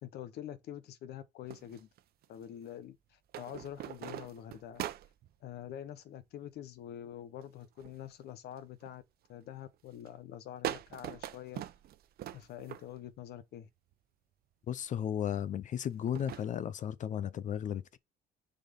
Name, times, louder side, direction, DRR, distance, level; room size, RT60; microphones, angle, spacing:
voice 1, 0.0-1.9 2.3-4.8 5.4-9.0 9.3-11.6 12.3-13.7, left 11 dB, 70° left, 1.0 m, -46 dB
sound 1, 1.5-2.5 3.3-5.3 7.4-8.1 8.5-9.0 9.5-9.8 10.1-10.2 10.6-13.2 13.9-14.0 15.8-16.5, right 12 dB, 65° right, 0.8 m, -42 dB
voice 2, 14.7-18.0, left 9 dB, 50° left, 0.5 m, -35 dB
6.5 x 4.2 x 5.2 m
cardioid pair, 110°, 17 cm